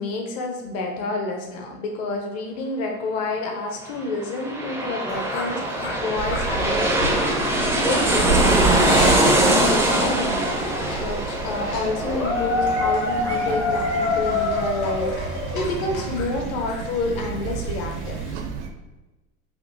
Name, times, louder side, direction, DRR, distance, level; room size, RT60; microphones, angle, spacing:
voice 1, 0.0-18.2, left 3 dB, 40° left, 2 dB, 0.7 m, -29 dB
sound 1, 4.1-15.4 15.8-15.9, right 1 dB, 5° right, 0.4 m, -23 dB
sound 2, 5.1-18.3, left 3 dB, 60° left, 1.3 m, -28 dB
sound 3, 6.2-18.7, right 6 dB, 60° right, 0.6 m, -31 dB
5.1 x 2.5 x 2.7 m, 1.1 s
figure-of-eight pair, 70°, 38 cm